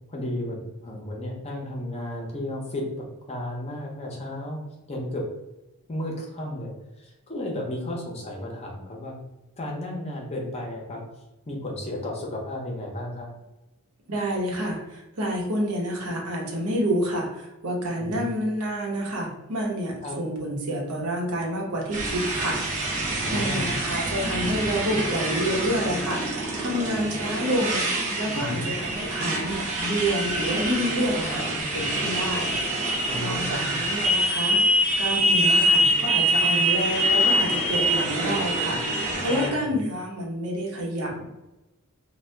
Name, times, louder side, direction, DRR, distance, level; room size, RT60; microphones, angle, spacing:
voice 1, 0.1-4.6 4.9-5.2 5.9-6.7 7.0-9.2 9.6-11.0 11.5-13.3 18.0-18.3 20.0-20.2 23.1-23.7 28.3-28.7 33.1-33.8 39.2-39.8, left 1 dB, 30° left, -1 dB, 0.7 m, -33 dB
voice 2, 14.1-22.6 22.9-32.5 33.2-41.2, equal, 80° right, -2 dB, 0.9 m, -29 dB
Motorcycle, 21.9-39.5, right 1 dB, 35° right, 0.7 m, -25 dB
2.7 x 2.3 x 3.3 m, 1.0 s
head